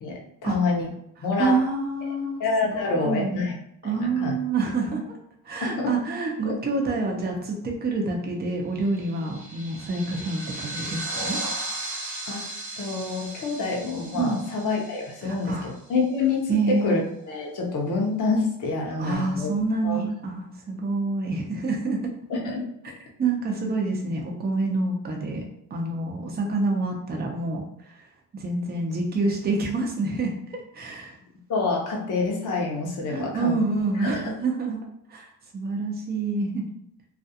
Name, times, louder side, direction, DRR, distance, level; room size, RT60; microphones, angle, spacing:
voice 1, 0.0-0.9 1.2-1.6 2.4-3.5 3.8-4.3 5.6-5.9 6.4-6.5 12.3-12.5 12.8-19.5 19.8-20.0 22.3-22.6 31.5-33.6 34.0-34.3, left 3 dB, 50° left, 0 dB, 0.7 m, -27 dB
voice 2, 1.4-3.5 3.8-5.2 5.4-11.4 14.1-14.4 15.2-15.7 16.5-17.0 19.0-22.1 23.2-25.4 25.7-27.9 28.3-31.2 33.1-34.8 35.1-36.7, right 3 dB, 25° right, 0 dB, 0.6 m, -27 dB
sound 1, 8.9-15.8, right 2 dB, 45° right, 0.9 m, -36 dB
2.4 x 2.3 x 2.7 m, 0.73 s
cardioid pair, 100°, 39 cm